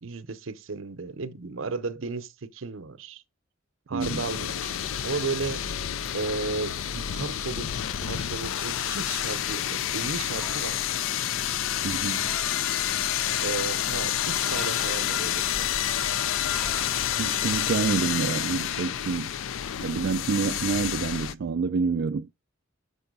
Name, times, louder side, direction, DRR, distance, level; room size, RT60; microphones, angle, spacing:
voice 1, 0.0-3.2 3.9-4.7 5.0-5.6 6.1-10.8 13.4-15.7, right 4 dB, 80° right, 0.8 m, -34 dB
voice 2, 3.9-4.2 11.8-12.3 17.2-19.3 19.8-22.3, right 5 dB, 60° right, 0.4 m, -28 dB
sound 1, 4.0-21.3, left 10 dB, 80° left, 0.4 m, -29 dB
sound 2, 4.2-17.4, left 1 dB, 45° left, 1.6 m, -46 dB
sound 3, 10.3-10.9 11.9-12.6 13.5-14.9 15.3-15.6 15.9-16.9, equal, ahead, 0.6 m, -44 dB
6.8 x 5.5 x 5.3 m
head